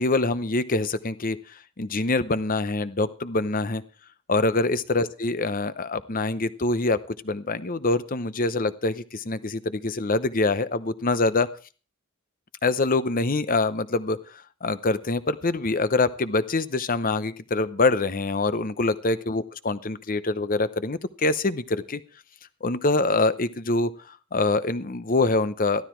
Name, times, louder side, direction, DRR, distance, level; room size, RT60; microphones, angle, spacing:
voice 1, 0.0-1.4 1.8-3.8 4.3-11.5 12.6-14.2 14.6-22.0 22.6-23.9 24.3-25.8, left 3 dB, 40° left, 14 dB, 0.8 m, -25 dB
14.5 x 12.5 x 4.5 m, 0.37 s
head